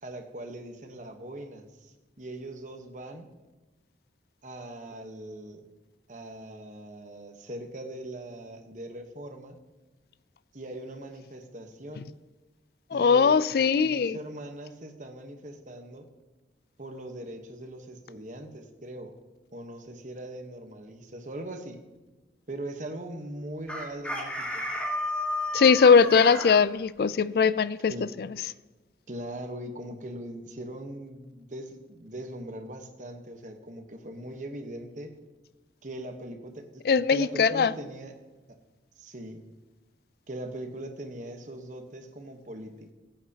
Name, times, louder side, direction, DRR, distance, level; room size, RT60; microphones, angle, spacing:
voice 1, 0.0-3.3 4.4-5.6 6.1-9.6 10.5-12.1 12.9-13.5 13.8-16.1 16.8-19.2 19.5-21.8 22.5-25.0 27.9-28.1 29.1-35.1 35.8-36.8 37.1-38.2 38.9-39.4 40.3-42.9, right 1 dB, 45° right, 1.1 m, -41 dB
voice 2, 12.9-14.2 25.5-27.9 36.9-37.7, left 5 dB, 60° left, 0.3 m, -20 dB
Chicken rooster, 23.7-26.6, left 1 dB, 5° left, 1.5 m, -32 dB
15.0 x 8.9 x 2.9 m
head